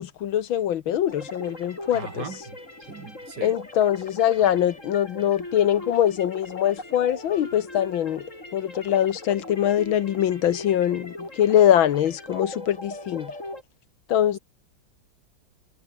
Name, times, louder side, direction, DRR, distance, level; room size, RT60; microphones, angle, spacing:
voice 1, 0.0-2.2 3.4-8.2 8.5-13.4 14.1-14.4, left 10 dB, 75° left, 1.9 m, -23 dB
sound 1, 1.1-13.6, left 1 dB, 35° left, 7.8 m, -40 dB
voice 2, 1.9-3.5 4.4-4.6, right 5 dB, 55° right, 2.7 m, -39 dB
omnidirectional pair, 2.2 m